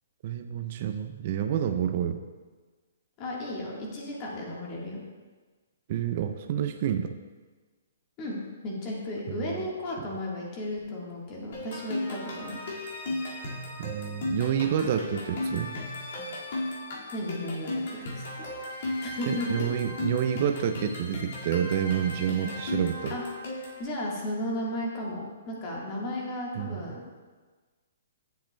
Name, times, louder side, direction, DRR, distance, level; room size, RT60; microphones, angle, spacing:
voice 1, 0.2-2.2 5.9-7.1 9.3-9.5 13.8-15.7 19.3-23.2 26.6-26.8, right 9 dB, 45° right, 8 dB, 0.4 m, -28 dB
voice 2, 3.2-5.0 8.2-8.4 8.6-12.6 17.1-18.4 19.0-19.6 23.1-23.2 23.8-27.0, left 1 dB, 30° left, -3 dB, 1.4 m, -34 dB
sound 1, 11.5-23.8, left 1 dB, 60° left, 2.0 m, -35 dB
7.4 x 7.3 x 2.2 m, 1.4 s
hypercardioid pair, 145°, 0 cm